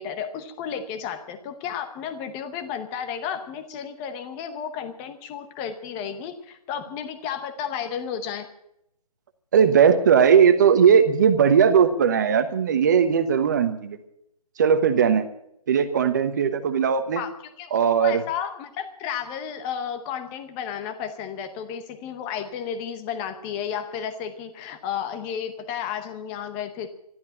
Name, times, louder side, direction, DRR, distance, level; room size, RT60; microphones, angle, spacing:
voice 1, 0.0-8.5 17.2-17.3 17.6-26.9, left 8 dB, 10° left, 8 dB, 0.8 m, -32 dB
voice 2, 9.5-14.0 14.6-15.2 15.7-17.2 17.7-18.2, right 7 dB, 30° right, 11 dB, 1.2 m, -18 dB
13.0 x 12.0 x 8.7 m, 0.76 s
hypercardioid pair, 165°, 20 cm